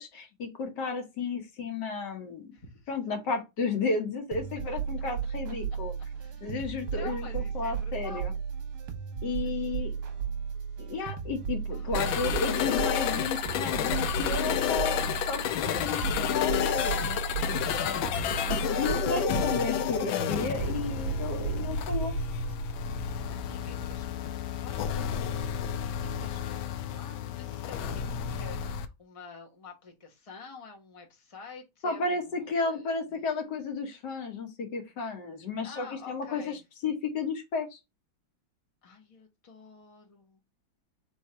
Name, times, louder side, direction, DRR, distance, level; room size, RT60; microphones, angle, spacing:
voice 1, 0.0-2.5 2.9-5.9 6.4-8.3 9.2-9.9 10.8-17.2 17.8-22.2 22.8-22.9 31.8-37.8, left 4 dB, 65° left, 1.6 m, -33 dB
voice 2, 2.5-2.9 6.2-8.4 9.4-9.5 9.8-10.3 11.7-12.4 18.3-19.3 23.3-25.2 26.0-33.2 35.6-36.6 38.8-40.4, left 4 dB, 25° left, 0.8 m, -49 dB
sound 1, 4.3-22.6, right 7 dB, 60° right, 1.3 m, -34 dB
sound 2, 11.9-28.9, left 9 dB, 85° left, 1.3 m, -31 dB
3.6 x 3.2 x 4.1 m
omnidirectional pair, 2.1 m